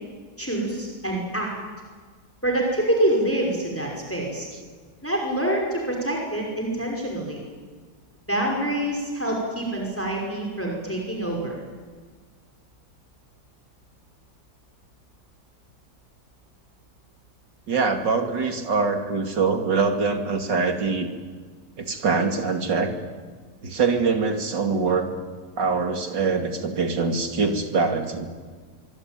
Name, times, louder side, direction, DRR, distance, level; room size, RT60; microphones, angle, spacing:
voice 1, 0.4-1.5 2.4-4.5 5.0-7.4 8.3-11.5, right 1 dB, 5° left, 0 dB, 5.4 m, -26 dB
voice 2, 17.7-21.1 21.8-22.9 23.6-25.1 25.6-28.3, right 4 dB, 70° right, 5 dB, 3.2 m, -23 dB
25.0 x 23.5 x 9.2 m, 1.5 s
omnidirectional pair, 2.0 m